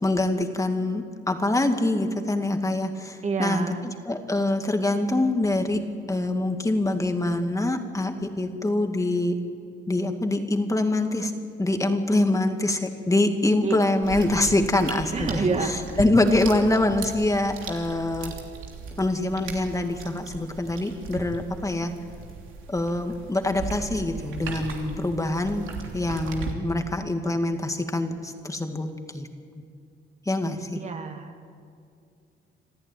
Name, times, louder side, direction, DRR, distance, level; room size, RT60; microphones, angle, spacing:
voice 1, 0.0-9.4 9.9-11.3 11.6-18.3 19.0-21.9 22.7-29.3 30.3-30.8, left 2 dB, 15° left, 6 dB, 2.2 m, -25 dB
voice 2, 3.2-3.8 13.6-13.8 15.1-16.0 30.8-31.5, right 4 dB, 35° right, 4 dB, 2.1 m, -28 dB
sound 1, 14.0-26.5, right 5 dB, 80° right, 3.1 m, -37 dB
26.5 x 14.0 x 9.3 m, 2.4 s
cardioid pair, 90°, 20 cm